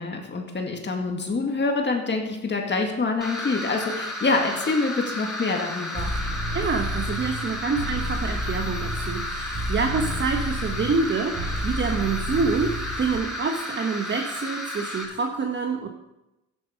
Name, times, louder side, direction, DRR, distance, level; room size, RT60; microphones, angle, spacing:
voice 1, 0.0-6.1, left 3 dB, 35° left, 2 dB, 2.0 m, -26 dB
sound 1, 3.2-15.0, left 1 dB, ahead, 4.3 m, -33 dB
sound 2, 5.9-13.2, equal, 55° right, 5.1 m, -31 dB
voice 2, 6.5-15.9, right 4 dB, 40° right, 4 dB, 1.1 m, -27 dB
12.0 x 10.5 x 5.1 m, 0.96 s
cardioid pair, 90°, 30 cm